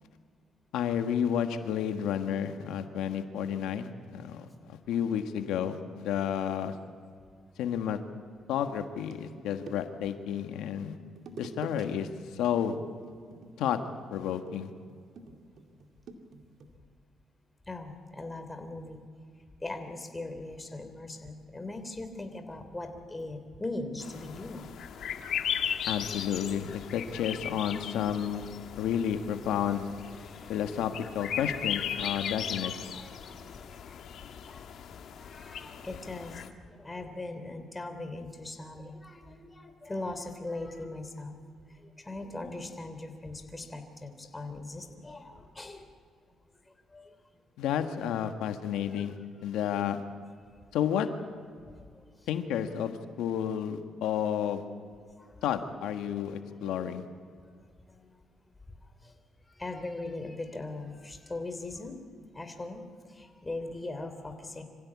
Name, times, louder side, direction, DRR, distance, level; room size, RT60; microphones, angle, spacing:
voice 1, 0.7-6.7 7.6-8.0 8.5-11.0 11.4-12.7 13.6-13.8 14.1-14.7 25.9-28.5 28.8-29.9 30.5-32.7 47.6-49.1 49.4-50.0 50.7-51.1 52.3-54.6 55.4-57.0, left 9 dB, 90° left, 7 dB, 1.5 m, -31 dB
sound 1, 8.8-10.2 11.2-11.9 12.2-12.4 12.7-16.8, right 4 dB, 65° right, 2.4 m, -48 dB
voice 2, 17.7-19.0 19.6-24.7 30.2-30.6 31.2-31.3 32.1-32.3 32.6-33.4 33.8-34.0 34.5-34.7 35.2-41.4 41.7-45.9 46.6-47.2 48.2-48.3 48.9-49.1 49.4-49.6 51.6-52.3 55.2-55.5 57.6-58.2 58.8-59.2 59.4-62.0 62.3-64.6, left 2 dB, 20° left, 6 dB, 3.1 m, -40 dB
sound 2, 24.0-36.5, left 8 dB, 70° left, 1.7 m, -37 dB
26.0 x 16.0 x 8.5 m, 2.2 s
cardioid pair, 90°, 0 cm